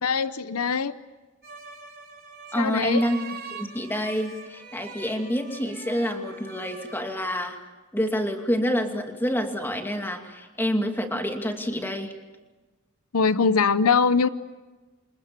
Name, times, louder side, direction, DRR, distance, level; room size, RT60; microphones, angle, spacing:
voice 1, 0.0-0.9 2.6-3.0 13.1-14.3, left 5 dB, 90° left, 14 dB, 0.8 m, -22 dB
sound 1, 1.4-7.0, right 4 dB, 50° right, 5.3 m, -43 dB
voice 2, 2.5-3.2 3.5-7.6 7.9-12.1, equal, 10° left, 4 dB, 2.6 m, -27 dB
29.0 x 26.0 x 7.5 m, 1.2 s
head